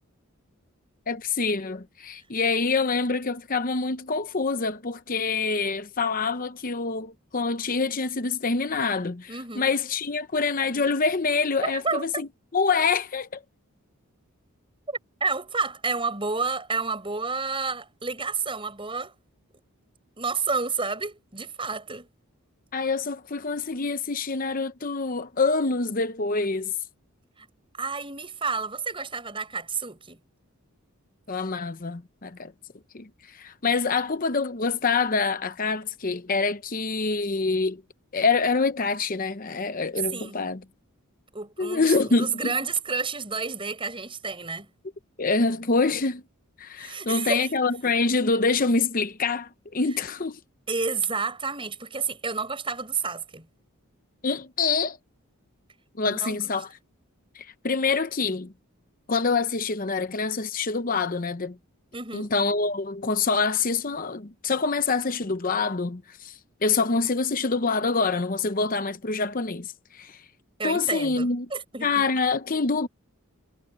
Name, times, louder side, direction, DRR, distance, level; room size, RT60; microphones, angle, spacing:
voice 1, 1.1-13.4 22.7-26.7 31.3-32.5 32.9-37.8 38.1-40.6 41.6-42.6 45.2-46.2 46.6-50.4 54.2-55.0 56.0-56.7 57.3-58.5 59.1-61.6 62.1-70.2 70.6-71.5 71.8-72.9, left 4 dB, 40° left, 0.8 m, -26 dB
voice 2, 9.3-9.7 11.6-12.2 14.9-19.1 20.2-22.1 27.8-30.2 40.1-40.4 41.3-44.7 46.8-47.5 50.7-53.5 56.0-56.4 61.9-62.3 70.6-71.9, right 4 dB, 25° right, 6.5 m, -30 dB
head